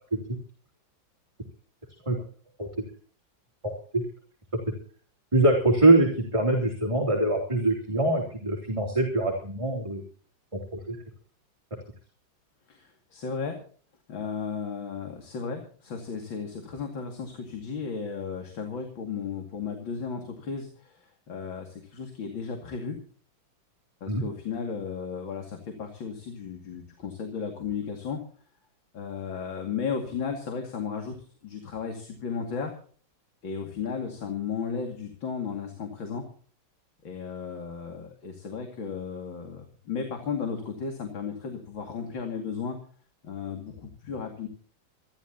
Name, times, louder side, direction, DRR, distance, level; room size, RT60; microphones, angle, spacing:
voice 1, 3.6-4.0 5.3-10.0 10.5-11.0 24.1-24.2, right 2 dB, 15° right, -1 dB, 3.1 m, -23 dB
voice 2, 12.7-13.6 14.1-23.0 24.0-28.2 28.9-31.1 31.4-32.7 33.4-36.2 37.0-42.8 43.2-44.5, left 6 dB, 75° left, 3 dB, 3.1 m, -34 dB
26.5 x 12.0 x 2.9 m, 0.44 s
omnidirectional pair, 2.1 m